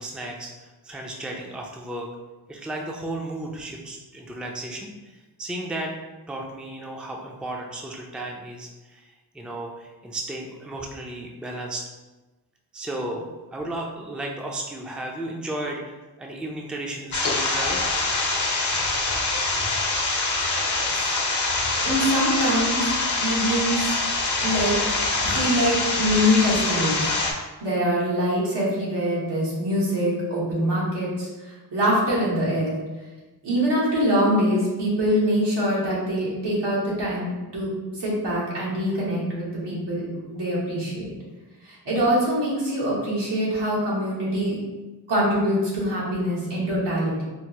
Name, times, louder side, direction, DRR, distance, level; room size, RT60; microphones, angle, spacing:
voice 1, 0.0-2.1 2.5-5.9 6.3-11.8 12.7-17.9, right 1 dB, ahead, 0 dB, 0.5 m, -34 dB
sound 1, 17.1-27.3, left 2 dB, 45° left, 0.8 m, -24 dB
voice 2, 21.8-22.9 23.2-23.8 24.4-24.7 25.3-27.0 27.6-32.8 33.4-41.1 41.6-44.6 45.1-47.2, equal, 80° right, -6 dB, 1.4 m, -24 dB
4.6 x 2.0 x 2.9 m, 1.2 s
cardioid pair, 60°, 41 cm